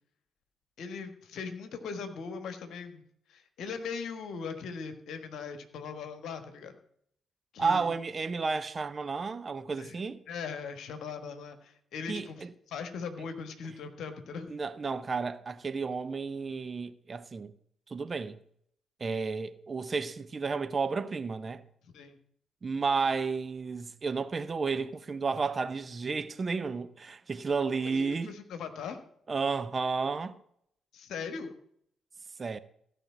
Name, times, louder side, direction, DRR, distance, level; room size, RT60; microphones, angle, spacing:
voice 1, 0.8-3.0 3.3-6.7 7.5-7.9 9.8-10.0 10.3-14.5 21.8-22.2 27.8-29.0 30.9-31.6, left 5 dB, 60° left, 1.4 m, -40 dB
voice 2, 7.6-10.2 12.1-12.5 14.5-17.5 17.9-18.4 19.0-21.6 22.6-28.3 29.3-30.4 32.4-32.6, right 4 dB, 40° right, 0.8 m, -32 dB
15.5 x 5.3 x 7.3 m
figure-of-eight pair, 40°, 0 cm